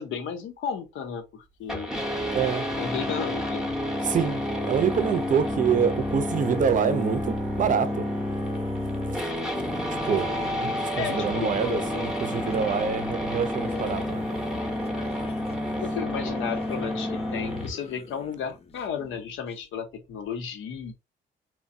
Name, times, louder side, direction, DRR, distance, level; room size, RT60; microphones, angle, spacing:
voice 1, 0.0-1.9 2.8-3.7 10.2-10.5 11.0-11.6 15.8-20.9, left 7 dB, 75° left, 0.7 m, -33 dB
sound 1, 1.7-17.7, left 1 dB, ahead, 0.7 m, -29 dB
voice 2, 2.3-2.7 4.0-8.1 9.1-9.2 10.0-10.3 10.6-14.2 15.2-15.3, right 7 dB, 40° right, 0.5 m, -26 dB
sound 2, 4.6-19.5, left 6 dB, 30° left, 0.4 m, -43 dB
3.0 x 2.1 x 2.6 m
cardioid pair, 90°, 20 cm